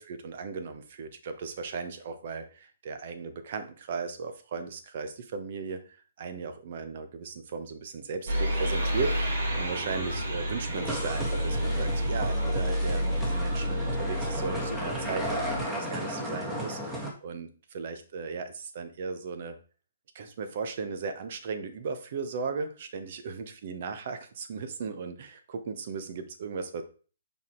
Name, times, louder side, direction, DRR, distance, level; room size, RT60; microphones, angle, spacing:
voice 1, 0.0-19.6 20.1-26.8, right 5 dB, 50° right, 8 dB, 1.1 m, -36 dB
sound 1, 8.3-15.6, equal, 65° right, 3.7 m, -30 dB
sound 2, 10.7-17.1, equal, 10° right, 1.6 m, -35 dB
5.5 x 4.5 x 4.6 m, 0.39 s
hypercardioid pair, 140°, 0 cm